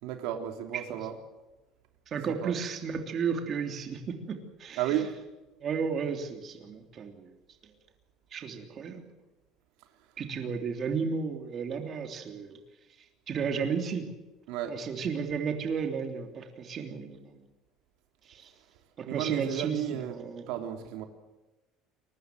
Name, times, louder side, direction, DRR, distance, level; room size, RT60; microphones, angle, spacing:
voice 1, 0.0-1.1 2.3-2.5 4.8-5.1 14.5-14.7 19.1-20.1 20.5-21.1, right 11 dB, 75° right, 5 dB, 3.0 m, -33 dB
voice 2, 2.1-4.0 4.3-5.0 5.6-7.3 8.3-9.0 10.2-12.6 13.3-14.1 14.7-17.4 18.3-18.5 19.0-20.4, right 6 dB, 35° right, 5 dB, 3.2 m, -33 dB
23.0 x 19.5 x 7.8 m, 1.1 s
cardioid pair, 150°, 0 cm